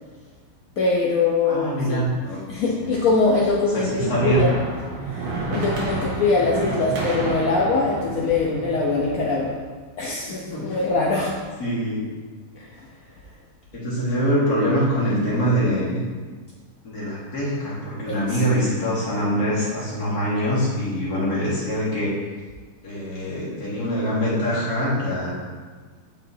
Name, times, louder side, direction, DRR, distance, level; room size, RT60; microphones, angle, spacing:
voice 1, 0.8-2.0 2.5-4.5 5.0-9.6 10.0-11.4 12.6-12.9 18.1-18.4, left 3 dB, 75° left, -4 dB, 0.8 m, -23 dB
voice 2, 1.5-2.9 3.7-4.5 10.5-10.6 11.6-12.1 13.7-16.0 16.8-22.1 22.8-25.5, equal, 45° left, -8 dB, 2.1 m, -24 dB
sound 1, 3.5-9.6, right 3 dB, 75° right, 1.9 m, -30 dB
9.4 x 4.3 x 2.7 m, 1.5 s
omnidirectional pair, 2.4 m